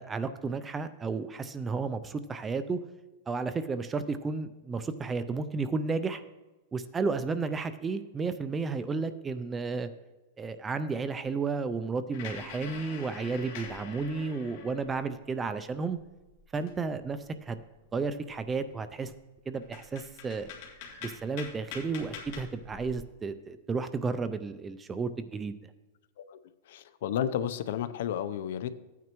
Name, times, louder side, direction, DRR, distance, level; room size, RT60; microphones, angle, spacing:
voice 1, 0.0-2.8 3.3-6.2 6.7-9.9 10.4-16.0 16.5-17.6 17.9-19.1 19.5-20.5 21.0-25.5, right 4 dB, 10° right, 12 dB, 0.3 m, -32 dB
sound 1, 12.1-15.1 15.6-17.1 17.5-17.6 18.0-18.5 19.1-19.2 19.5-23.0, left 6 dB, 40° left, 1.9 m, -45 dB
voice 2, 26.7-28.7, left 9 dB, 55° left, 13 dB, 0.6 m, -32 dB
15.0 x 9.3 x 3.0 m, 1.1 s
supercardioid pair, 175°, 0 cm